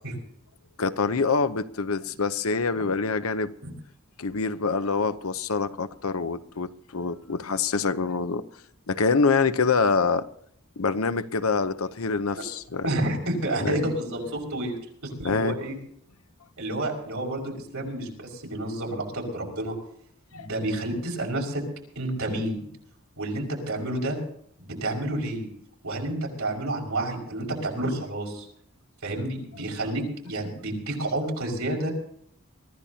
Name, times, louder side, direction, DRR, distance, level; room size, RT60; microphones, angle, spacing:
voice 1, 0.8-3.5 4.2-8.4 8.9-10.2 10.8-12.9 13.6-13.9 15.2-15.6 20.3-20.5, left 4 dB, 80° left, 0.8 m, -25 dB
voice 2, 12.8-14.8 15.0-15.8 16.6-19.7 20.3-21.6 22.0-22.6 23.2-24.2 24.6-25.5 25.8-28.5 29.0-31.9, right 1 dB, 85° right, 5.8 m, -30 dB
24.0 x 15.0 x 2.9 m
head